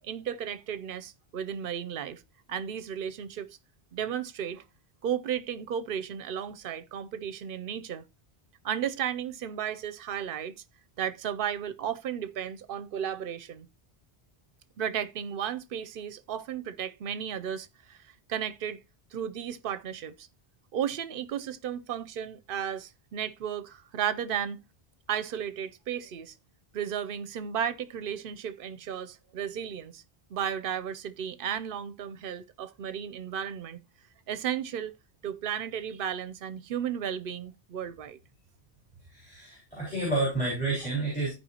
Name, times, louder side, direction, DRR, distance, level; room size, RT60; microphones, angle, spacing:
voice 1, 0.0-2.2 2.5-3.6 3.9-4.6 5.0-8.0 8.6-10.5 11.0-13.7 14.8-18.0 18.3-18.8 19.1-20.3 20.7-24.6 25.1-26.3 26.7-30.0 30.3-33.8 34.3-34.9 35.2-38.2, right 9 dB, 65° right, 0.8 m, -34 dB
voice 2, 39.1-41.3, right 2 dB, 5° left, 4.9 m, -30 dB
14.0 x 4.8 x 2.8 m
omnidirectional pair, 1.0 m